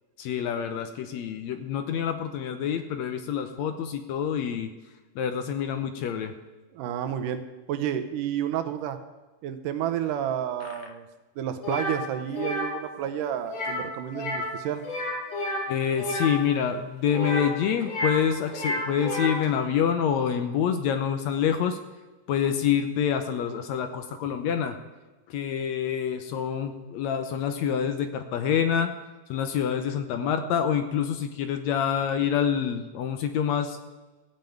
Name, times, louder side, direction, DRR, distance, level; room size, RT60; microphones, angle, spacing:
voice 1, 0.2-4.7 5.2-6.3 10.6-10.7 15.7-21.8 22.3-24.8 25.3-28.9 29.3-33.8, left 8 dB, 75° left, 8 dB, 1.9 m, -27 dB
voice 2, 6.7-9.0 9.4-11.1 11.4-14.8, right 10 dB, 85° right, 8 dB, 2.4 m, -30 dB
sound 1, 11.6-12.0 12.3-12.7 13.5-13.9 14.1-14.5 14.8-16.3 17.1-18.2 18.5-19.5, left 1 dB, 40° left, 2.7 m, -30 dB
15.5 x 5.3 x 9.1 m, 1.2 s
omnidirectional pair, 3.7 m